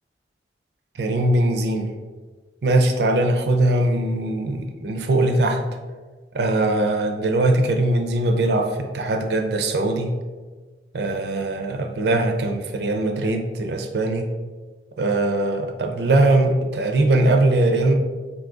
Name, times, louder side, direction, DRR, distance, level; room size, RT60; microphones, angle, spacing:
voice 1, 1.0-1.9 2.6-5.6 6.3-10.1 10.9-14.3 15.0-17.9, right 2 dB, 65° right, 4 dB, 0.5 m, -21 dB
3.8 x 2.7 x 3.6 m, 1.4 s
head